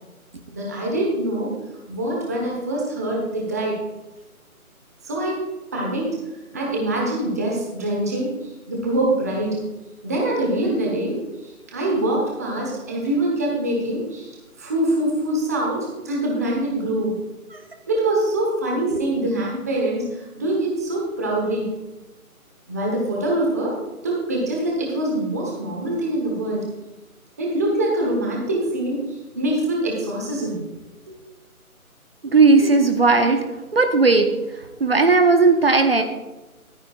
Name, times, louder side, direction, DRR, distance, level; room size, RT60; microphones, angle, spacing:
voice 1, 0.5-1.5 1.9-3.7 5.0-5.4 5.7-6.1 6.5-9.6 10.0-11.2 11.4-17.1 17.9-21.7 22.7-23.7 24.0-26.6 27.4-30.6 31.1-31.2, right 1 dB, 10° right, -2 dB, 1.1 m, -24 dB
voice 2, 32.2-33.4 33.7-34.3 34.8-36.0, right 3 dB, 40° right, 6 dB, 1.0 m, -16 dB
14.0 x 13.0 x 2.4 m, 1.1 s
figure-of-eight pair, 165°, 44 cm